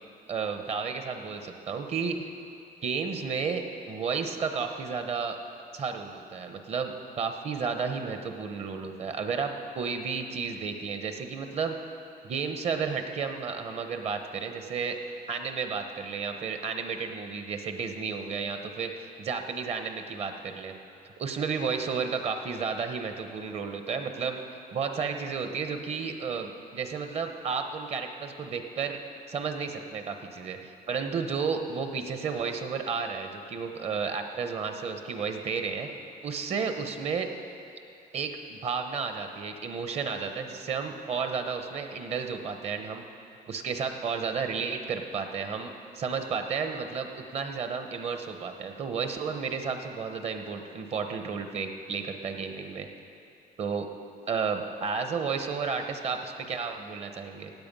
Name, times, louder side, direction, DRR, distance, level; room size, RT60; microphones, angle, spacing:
voice 1, 0.3-2.3 2.8-3.6 3.9-5.4 5.7-11.7 12.2-15.0 15.3-20.7 21.2-24.4 24.7-29.0 29.3-35.9 36.2-37.3 38.1-43.0 43.5-52.9 53.6-53.9 54.3-57.5, right 5 dB, 40° right, 6 dB, 1.0 m, -32 dB
16.5 x 8.7 x 5.5 m, 2.6 s
cardioid pair, 145°, 16 cm